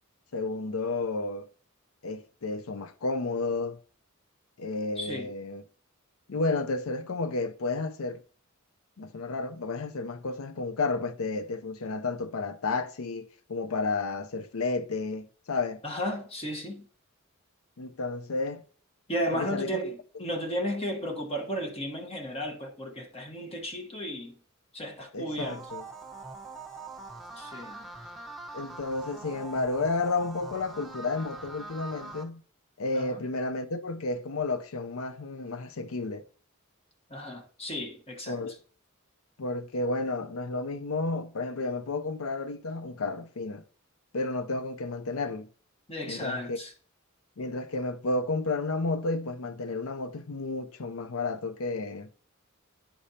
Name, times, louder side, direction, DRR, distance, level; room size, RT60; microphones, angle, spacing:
voice 1, 0.3-1.5 2.0-3.8 4.6-5.6 6.3-8.2 9.0-15.8 17.8-18.6 19.3-19.8 25.1-25.9 28.5-32.4 32.8-36.2 38.3-38.6 39.4-43.6 44.1-45.5 46.0-46.6 47.4-52.1, left 3 dB, 80° left, 0.6 m, -32 dB
voice 2, 5.0-5.3 15.8-16.8 19.1-24.3 24.7-25.6 27.4-27.9 32.9-33.2 37.1-38.4 45.9-46.7, equal, 30° left, 1.1 m, -34 dB
sound 1, 25.4-32.2, right 3 dB, ahead, 1.0 m, -43 dB
10.0 x 5.1 x 2.8 m
head